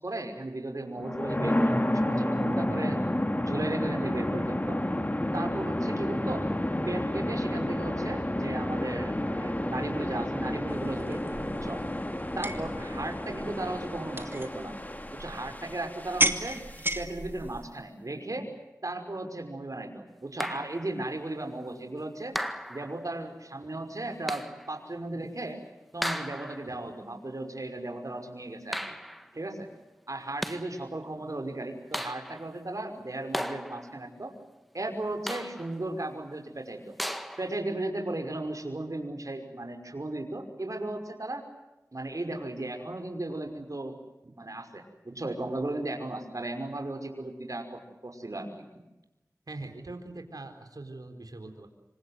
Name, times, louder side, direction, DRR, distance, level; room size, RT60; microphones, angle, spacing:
voice 1, 0.0-3.0 3.4-4.8 5.3-6.5 6.9-11.8 12.3-14.7 15.1-16.6 16.9-18.5 18.8-22.4 22.7-25.6 25.9-28.9 29.3-29.7 30.1-34.4 34.7-37.0 37.4-41.5 41.9-44.0 44.2-48.7, right 2 dB, 60° right, 5 dB, 5.7 m, -36 dB
sound 1, 0.9-16.9, left 1 dB, 25° left, 2.4 m, -31 dB
sound 2, 10.7-17.7, right 1 dB, 35° right, 2.6 m, -35 dB
sound 3, 20.4-21.0 22.3-23.1 24.3-24.7 26.0-26.7 28.7-29.3 30.2-30.8 31.9-32.5 33.3-34.1 35.3-35.8 37.0-37.6, equal, ahead, 1.8 m, -36 dB
voice 2, 49.5-51.7, right 2 dB, 80° right, 6 dB, 4.1 m, -42 dB
27.5 x 26.0 x 7.8 m, 0.98 s
wide cardioid pair, 50°, 6 cm